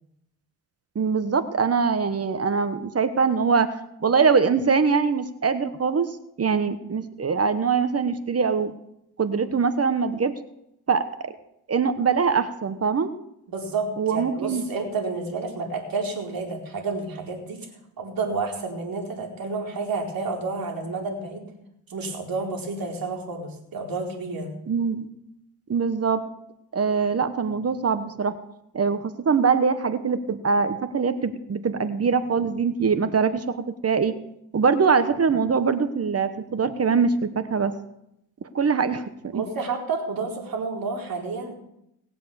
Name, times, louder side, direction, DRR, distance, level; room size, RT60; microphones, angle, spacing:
voice 1, 0.9-3.7 4.0-6.1 6.4-8.7 9.2-10.3 10.9-11.3 11.7-13.1 14.0-14.7 24.7-25.1 25.7-26.2 26.7-28.4 28.7-34.1 34.5-37.7 38.4-39.0 39.3-39.4, right 5 dB, 35° right, 12 dB, 1.2 m, -23 dB
voice 2, 13.5-17.6 18.0-21.4 21.9-24.5 39.3-41.5, right 4 dB, 55° right, 0 dB, 4.3 m, -30 dB
19.0 x 7.7 x 7.0 m, 0.81 s
cardioid pair, 80°, 40 cm